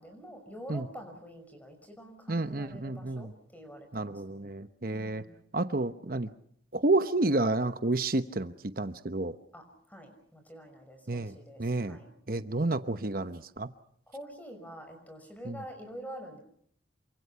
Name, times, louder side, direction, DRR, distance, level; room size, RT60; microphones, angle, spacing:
voice 1, 0.0-4.5 4.9-5.4 9.5-12.1 14.1-16.4, equal, 10° left, 5 dB, 5.8 m, -47 dB
voice 2, 2.3-3.3 3.9-5.2 5.5-6.3 6.7-9.4 11.1-12.0 12.3-13.7 15.4-15.6, right 2 dB, 50° right, 10 dB, 1.0 m, -30 dB
28.0 x 25.0 x 5.7 m, 0.65 s
head